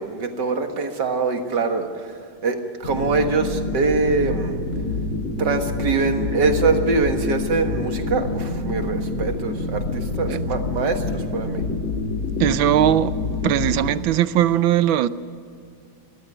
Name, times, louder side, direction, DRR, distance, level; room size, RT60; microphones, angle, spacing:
voice 1, 0.0-4.6 5.4-11.6, right 4 dB, 60° right, 2.2 m, -24 dB
sound 1, 2.8-13.9, left 3 dB, 85° left, 2.8 m, -27 dB
voice 2, 12.4-13.2 13.4-15.1, right 11 dB, 85° right, 1.5 m, -19 dB
21.5 x 15.0 x 9.9 m
omnidirectional pair, 2.1 m